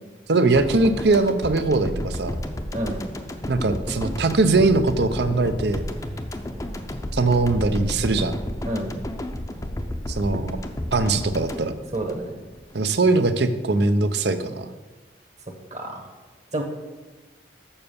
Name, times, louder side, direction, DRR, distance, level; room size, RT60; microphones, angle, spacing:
voice 1, 0.3-2.3 3.5-5.8 7.1-8.4 10.1-10.6 10.9-11.7 12.7-14.7, right 3 dB, 65° right, 10 dB, 0.7 m, -21 dB
sound 1, 0.6-12.7 13.0-13.2, left 1 dB, 20° left, 0.6 m, -32 dB
voice 2, 2.7-3.0 8.6-8.9 11.9-12.3 15.7-16.1 16.5-16.6, right 1 dB, 40° right, 3 dB, 1.2 m, -29 dB
7.2 x 6.8 x 6.9 m, 1.2 s
head